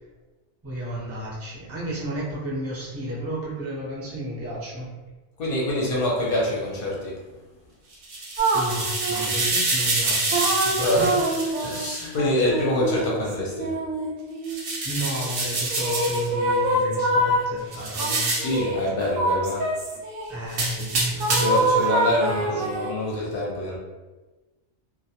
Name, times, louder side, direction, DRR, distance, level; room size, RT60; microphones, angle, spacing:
voice 1, 0.6-4.9 8.5-11.7 14.8-18.3 20.3-21.6 22.0-22.6, right 1 dB, 20° right, -7 dB, 0.4 m, -33 dB
voice 2, 5.4-7.1 10.8-11.1 11.6-13.7 18.3-19.7 21.3-23.8, left 1 dB, 60° left, -3 dB, 0.7 m, -25 dB
sound 1, 7.9-12.1 14.4-16.3 17.7-18.6 20.5-21.7, right 2 dB, 60° right, 0.7 m, -27 dB
sound 2, 8.4-9.5 10.3-14.7 15.7-17.5 18.0-20.4 21.2-23.0, right 1 dB, 85° right, 0.9 m, -25 dB
2.1 x 2.1 x 2.8 m, 1.2 s
omnidirectional pair, 1.2 m